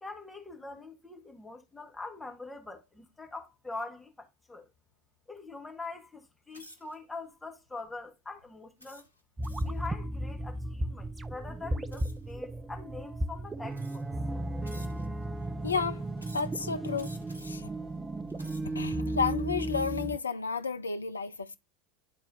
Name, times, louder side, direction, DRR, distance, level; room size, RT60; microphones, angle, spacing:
voice 1, 0.0-4.7 5.3-9.1 9.6-14.0, left 3 dB, 10° left, 1.4 m, -43 dB
sound 1, 6.5-7.0 7.6-7.9 8.8-9.8 11.9-12.3 13.1-13.2 13.7-14.2 14.6-15.2 16.2-16.6 16.9-17.7 18.2-18.8, equal, 90° right, 0.8 m, -52 dB
sound 2, 9.4-20.2, right 1 dB, 15° right, 0.5 m, -35 dB
voice 2, 15.6-16.0 16.3-17.2 17.4-17.7 18.8-21.6, left 5 dB, 80° left, 0.4 m, -32 dB
10.5 x 4.1 x 2.6 m
figure-of-eight pair, 80°, 0 cm